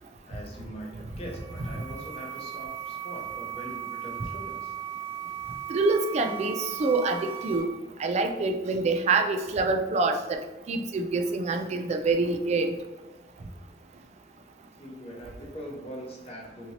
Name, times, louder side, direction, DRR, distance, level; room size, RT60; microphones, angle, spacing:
voice 1, 0.0-4.8 14.8-16.7, equal, 35° left, -2 dB, 0.7 m, -42 dB
sound 1, 1.1-7.6, right 9 dB, 80° left, 1.5 m, -37 dB
voice 2, 5.7-7.7 8.0-10.4 10.7-12.7, right 3 dB, 40° right, 5 dB, 0.3 m, -26 dB
2.8 x 2.7 x 2.8 m, 1.1 s
head